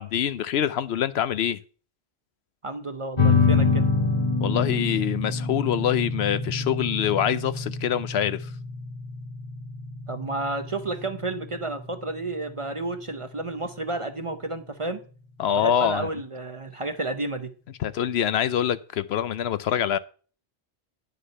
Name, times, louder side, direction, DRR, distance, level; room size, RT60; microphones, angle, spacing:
voice 1, 0.0-1.6 4.4-8.5 15.4-16.1 17.8-20.0, left 9 dB, 75° left, 0.8 m, -25 dB
voice 2, 2.6-3.9 10.1-15.0 15.5-17.5, right 2 dB, 35° right, 0.6 m, -31 dB
sound 1, 3.2-14.2, left 4 dB, 25° left, 1.0 m, -27 dB
9.7 x 6.7 x 5.4 m
omnidirectional pair, 1.1 m